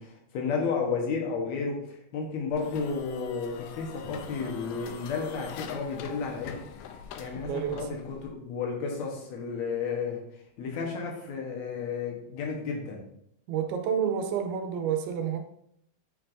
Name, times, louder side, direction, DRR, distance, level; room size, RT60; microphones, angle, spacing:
voice 1, 0.0-6.6 7.2-10.2 10.6-13.0, left 5 dB, 65° left, 0 dB, 1.8 m, -32 dB
sound 1, 2.5-8.3, left 8 dB, 90° left, 1.9 m, -43 dB
voice 2, 7.4-7.9 13.5-15.4, right 8 dB, 85° right, 6 dB, 2.6 m, -29 dB
8.4 x 4.6 x 2.6 m, 0.74 s
omnidirectional pair, 4.4 m